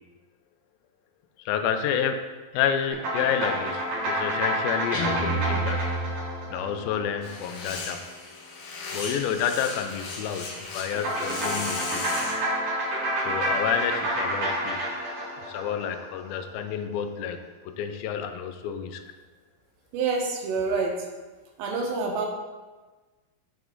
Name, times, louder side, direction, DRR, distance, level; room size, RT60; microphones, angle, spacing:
voice 1, 1.5-2.2 2.5-5.8 6.5-8.1 8.9-12.1 13.3-14.8 15.4-17.4 17.7-19.0, left 8 dB, 90° left, 7 dB, 2.3 m, -29 dB
sound 1, 2.9-7.6 10.9-16.3, right 1 dB, 65° right, 3.3 m, -29 dB
Guitar, 4.9-7.0, right 2 dB, 50° left, 1.8 m, -30 dB
sound 2, 7.2-12.4, left 3 dB, 70° left, 2.3 m, -36 dB
voice 2, 19.9-21.0 21.6-22.3, right 4 dB, 80° right, 1 dB, 2.2 m, -27 dB
8.2 x 3.4 x 3.7 m, 1.3 s
omnidirectional pair, 4.0 m